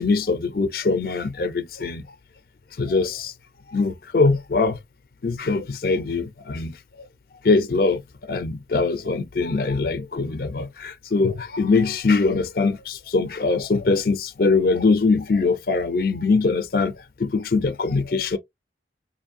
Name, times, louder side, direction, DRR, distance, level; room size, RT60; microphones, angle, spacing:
voice 1, 0.0-2.0 2.8-3.3 3.7-4.8 5.2-6.7 7.4-8.0 8.3-16.9 17.2-18.4, left 3 dB, 55° left, 0.5 m, -22 dB
5.1 x 2.6 x 2.5 m
head